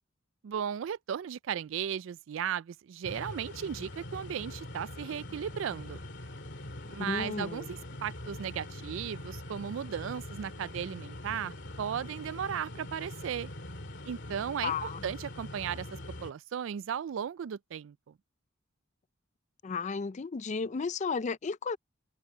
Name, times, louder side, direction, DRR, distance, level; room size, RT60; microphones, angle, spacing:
voice 1, 0.4-6.0 6.9-13.5 14.0-15.9 16.2-18.1, right 8 dB, 70° right, 0.3 m, -36 dB
sound 1, 3.0-16.3, left 1 dB, 60° left, 2.7 m, -43 dB
voice 2, 7.0-7.7 14.6-15.0 19.6-21.8, left 5 dB, 35° left, 0.4 m, -33 dB
head